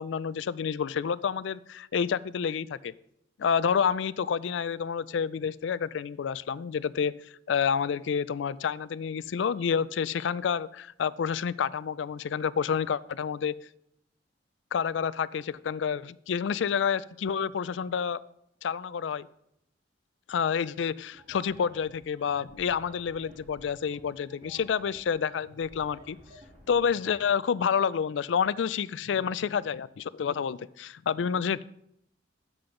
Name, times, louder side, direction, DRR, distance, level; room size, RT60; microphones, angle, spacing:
voice 1, 0.0-2.9 3.4-7.1 7.5-13.5 14.7-18.2 18.6-19.3 20.3-26.2 26.7-31.6, left 7 dB, 75° left, 18 dB, 0.4 m, -29 dB
sound 1, 21.1-27.1, equal, 40° right, 2.6 m, -53 dB
10.0 x 7.8 x 3.8 m, 0.77 s
head